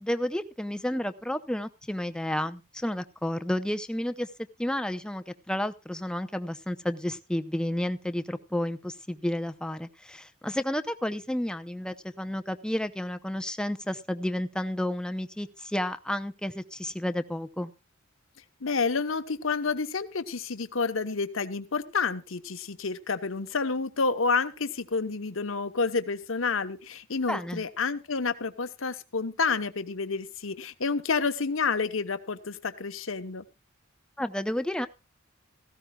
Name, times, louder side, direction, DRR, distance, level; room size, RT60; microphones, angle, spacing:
voice 1, 0.0-4.3 4.6-17.7 27.3-27.6 34.2-34.9, left 1 dB, 5° left, 11 dB, 0.6 m, -31 dB
voice 2, 18.6-33.4, left 4 dB, 80° left, 10 dB, 1.0 m, -29 dB
17.0 x 15.0 x 2.3 m, 0.27 s
head